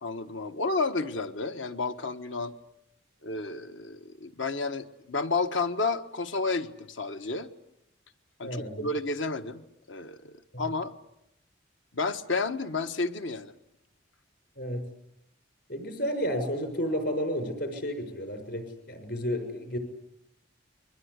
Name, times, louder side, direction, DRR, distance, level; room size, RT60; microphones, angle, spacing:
voice 1, 0.0-2.5 3.2-7.5 8.4-10.9 11.9-13.5, left 3 dB, 80° left, 8 dB, 1.5 m, -31 dB
voice 2, 8.4-8.9 10.5-10.7 14.6-14.9 15.7-19.8, equal, 60° left, 7 dB, 6.3 m, -32 dB
30.0 x 23.0 x 8.3 m, 0.82 s
head